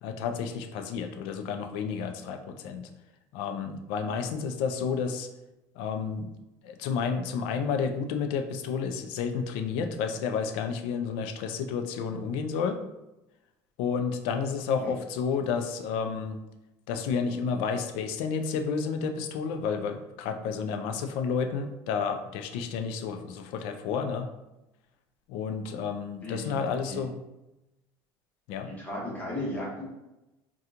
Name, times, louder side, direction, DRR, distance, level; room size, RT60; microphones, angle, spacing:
voice 1, 0.0-2.8 3.3-5.3 5.8-6.3 6.6-12.8 13.8-16.4 16.9-24.3 25.3-27.1 28.5-28.7, left 6 dB, 70° left, 6 dB, 0.4 m, -31 dB
voice 2, 26.2-26.5 26.8-27.0 28.8-29.8, left 1 dB, 15° left, -5 dB, 1.0 m, -35 dB
2.8 x 2.3 x 3.6 m, 0.97 s
cardioid pair, 150°, 10 cm